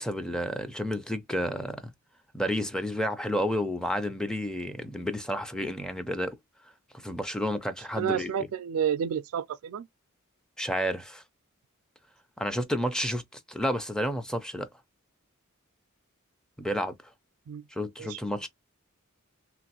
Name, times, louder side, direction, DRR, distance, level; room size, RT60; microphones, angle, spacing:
voice 1, 0.0-1.9 2.3-6.4 7.0-8.3 10.6-11.2 12.4-13.2 13.5-14.7 16.6-16.9 17.7-18.5, equal, 5° left, 0.4 m, -30 dB
voice 2, 7.9-9.9 17.5-17.6 18.0-18.2, right 8 dB, 70° right, 0.3 m, -30 dB
3.0 x 2.4 x 2.8 m
head